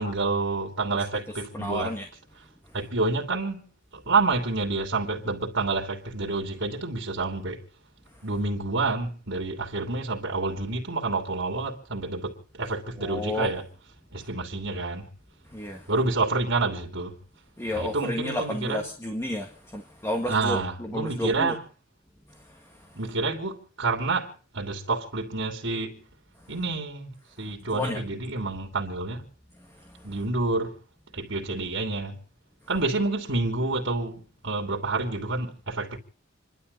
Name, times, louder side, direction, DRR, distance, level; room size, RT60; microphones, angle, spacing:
voice 1, 0.0-1.9 2.4-2.5 2.7-3.6 3.9-7.6 8.2-13.6 14.1-15.1 15.9-17.2 17.7-18.8 20.2-21.6 22.9-26.1 26.5-29.3 30.0-30.8 31.1-32.2 32.7-36.0, right 3 dB, 70° right, 3.2 m, -28 dB
voice 2, 1.5-2.1 13.0-13.5 15.5-15.9 17.6-21.6 22.3-22.9 27.7-28.0 29.8-30.1, left 1 dB, 15° left, 1.9 m, -32 dB
29.0 x 12.0 x 4.1 m
head